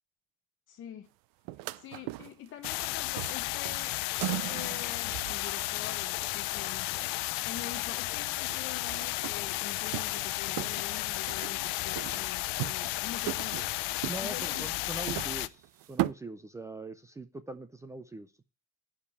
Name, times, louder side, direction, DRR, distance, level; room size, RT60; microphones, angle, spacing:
voice 1, 0.7-1.1 1.7-3.9 4.3-14.7, left 10 dB, 35° left, 0.8 m, -45 dB
sound 1, 1.5-2.9 3.1-5.8 8.0-8.1 8.3-10.3 10.6-11.6 12.0-13.0 13.3-16.1, right 19 dB, 75° right, 0.5 m, -38 dB
sound 2, 2.6-15.5, left 20 dB, 80° left, 0.6 m, -33 dB
voice 2, 14.0-18.4, right 2 dB, 10° right, 0.5 m, -42 dB
11.0 x 5.2 x 8.2 m
cardioid pair, 165°, 33 cm